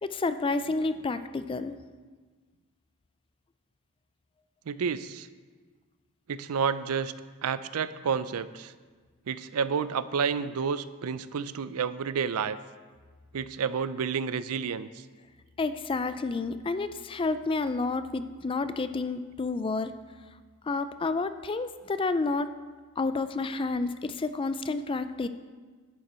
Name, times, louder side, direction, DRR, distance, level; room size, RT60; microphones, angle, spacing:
voice 1, 0.0-1.8 15.6-19.9 20.7-22.5 23.0-25.3, left 3 dB, 25° left, 12 dB, 0.3 m, -30 dB
voice 2, 4.7-5.3 6.3-7.1 7.4-8.7 9.3-12.6 13.3-14.9, right 6 dB, 75° right, 15 dB, 0.4 m, -30 dB
11.0 x 9.3 x 4.4 m, 1.4 s
head